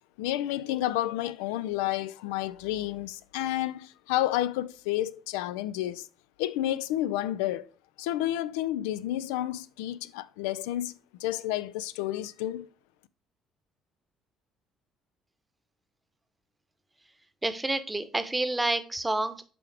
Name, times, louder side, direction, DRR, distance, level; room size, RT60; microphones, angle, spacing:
voice 1, 0.2-6.1 6.4-7.7 8.0-12.7, left 14 dB, 75° left, 0.3 m, -30 dB
voice 2, 17.4-19.4, right 2 dB, 15° right, 0.9 m, -29 dB
8.4 x 3.5 x 3.3 m
hypercardioid pair, 55°, 0 cm